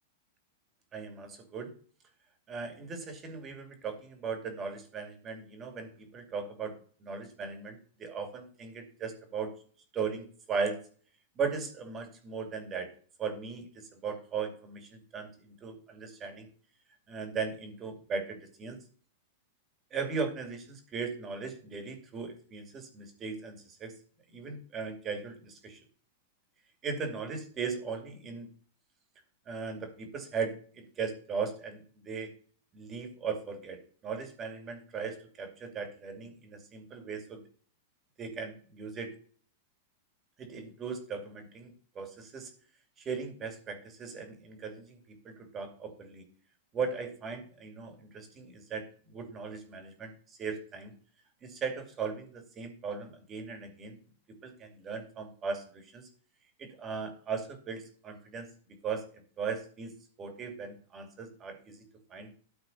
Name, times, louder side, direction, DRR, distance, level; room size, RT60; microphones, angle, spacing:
voice 1, 0.9-1.7 2.5-9.5 9.9-10.8 11.3-12.9 13.2-16.5 17.1-18.8 19.9-24.0 24.3-25.8 26.8-28.5 29.5-32.3 32.7-37.4 38.2-39.1 40.4-42.5 43.0-46.3 46.7-50.9 51.4-54.0 54.4-56.1 56.6-59.9 60.2-61.8 62.1-62.3, right 5 dB, 20° right, 6 dB, 2.4 m, -38 dB
13.0 x 4.4 x 5.4 m, 0.42 s
supercardioid pair, 155°, 0 cm